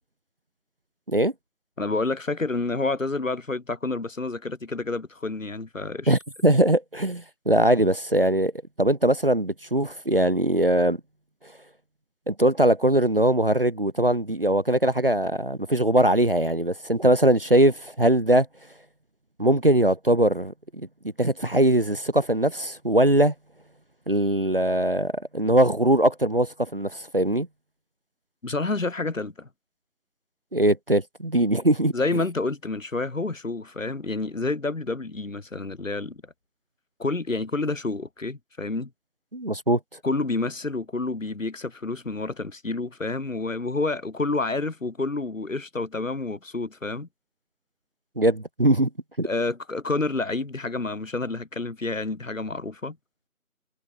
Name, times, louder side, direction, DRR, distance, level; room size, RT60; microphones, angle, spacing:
voice 1, 1.8-6.1 28.4-29.5 31.9-36.3 37.0-38.9 40.0-47.1 49.2-53.0, left 3 dB, 60° left, 3.5 m, -29 dB
voice 2, 6.1-8.5 8.8-11.0 12.3-18.5 19.4-23.3 24.1-27.5 30.5-31.9 39.3-39.8 48.2-48.9 49.2-49.3, right 1 dB, 40° right, 1.0 m, -21 dB
figure-of-eight pair, 180°, 43 cm